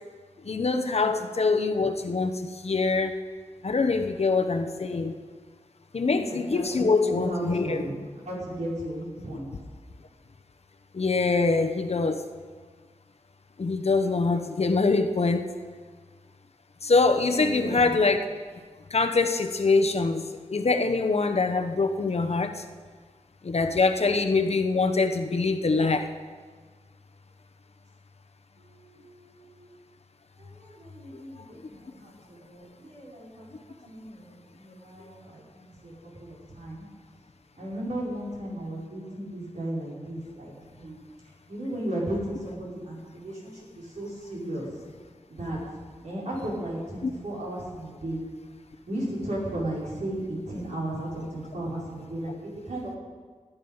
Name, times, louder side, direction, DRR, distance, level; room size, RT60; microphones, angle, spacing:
voice 1, 0.4-3.2 3.6-5.1 5.9-7.8 10.9-12.2 13.6-15.5 16.8-18.2 18.9-22.6 23.4-26.1 31.1-31.2 47.0-47.1, left 3 dB, 55° left, 6 dB, 1.0 m, -24 dB
voice 2, 6.0-8.0 8.3-9.5 17.4-18.0 28.6-29.8 30.4-33.5 33.8-36.9 37.6-41.0 41.5-44.7 45.3-45.8 46.0-48.2 48.9-53.0, right 1 dB, 70° right, -6 dB, 5.7 m, -35 dB
19.0 x 9.5 x 5.7 m, 1.5 s
wide cardioid pair, 75°, 13 cm